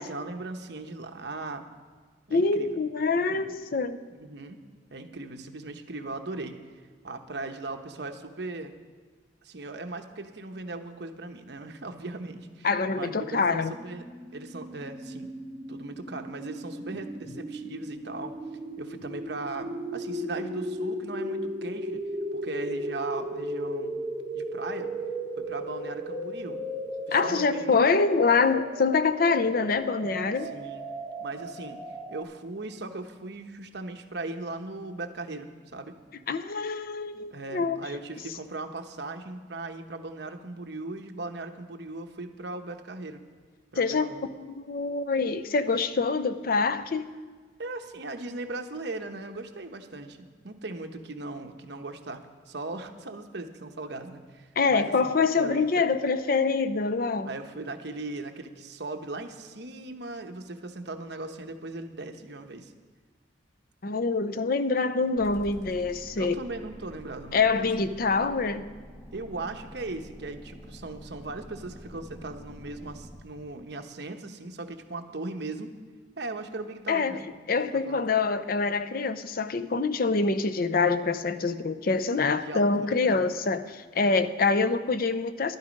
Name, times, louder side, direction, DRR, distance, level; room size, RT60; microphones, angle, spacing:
voice 1, 0.0-1.7 2.3-2.8 3.3-3.5 4.2-4.6 4.9-6.6 7.0-8.7 9.4-15.3 15.7-18.4 18.8-22.0 22.3-24.0 24.3-24.9 25.4-26.6 27.1-27.7 30.4-30.9 31.2-31.8 32.1-35.9 37.3-43.2 43.7-44.2 47.6-50.2 50.4-55.9 57.3-62.7 66.2-67.7 69.1-75.7 76.2-77.2 77.9-78.0 82.3-83.3, right 2 dB, 65° right, 5 dB, 1.0 m, -38 dB
voice 2, 2.3-4.0 12.6-13.7 27.1-30.5 36.3-37.8 43.8-44.1 44.5-47.1 54.6-57.3 63.8-66.4 67.3-68.6 76.9-77.2 77.5-85.6, left 4 dB, 50° left, 11 dB, 0.6 m, -25 dB
sound 1, 13.3-32.2, equal, 5° right, 1.6 m, -36 dB
sound 2, 65.2-73.2, equal, 20° left, 2.3 m, -47 dB
12.0 x 12.0 x 5.3 m, 1.5 s
head